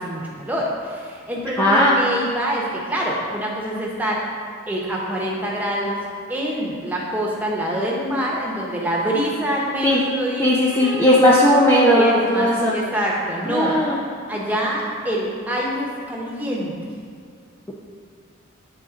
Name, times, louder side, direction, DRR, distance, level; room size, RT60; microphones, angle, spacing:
voice 1, 0.0-4.2 4.7-6.0 6.3-11.1 11.9-13.8 14.3-16.7, equal, 10° right, -4 dB, 0.9 m, -25 dB
voice 2, 1.6-1.9 9.8-10.0 10.4-12.7 13.5-14.0, left 1 dB, 10° left, -6 dB, 0.5 m, -16 dB
8.6 x 3.8 x 3.7 m, 2.2 s
head